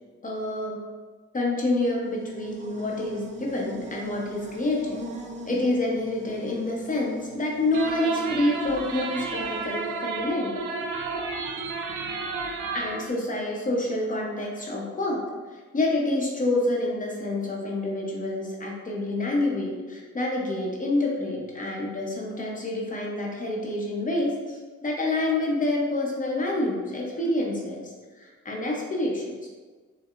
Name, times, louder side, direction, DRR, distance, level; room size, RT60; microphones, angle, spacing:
voice 1, 0.2-0.8 1.3-5.0 5.5-10.5 12.7-15.2 15.5-27.9 28.2-29.5, left 2 dB, 25° left, -2 dB, 0.7 m, -27 dB
Buzz, 1.9-10.1, right 2 dB, 25° right, 0.4 m, -42 dB
sound 1, 7.7-13.1, right 4 dB, 75° right, 0.5 m, -32 dB
4.7 x 2.0 x 2.4 m, 1.4 s
cardioid pair, 90°, 30 cm